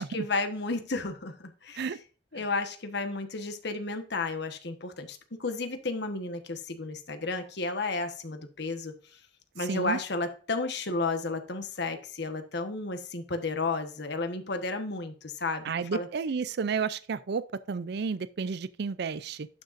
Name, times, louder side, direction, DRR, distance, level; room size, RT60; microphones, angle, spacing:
voice 1, 0.0-1.8 2.3-9.2 9.5-15.6 15.9-16.1, left 3 dB, 65° left, 1.3 m, -32 dB
voice 2, 9.6-10.0 15.6-19.5, right 5 dB, 60° right, 0.4 m, -32 dB
11.5 x 6.4 x 2.6 m
head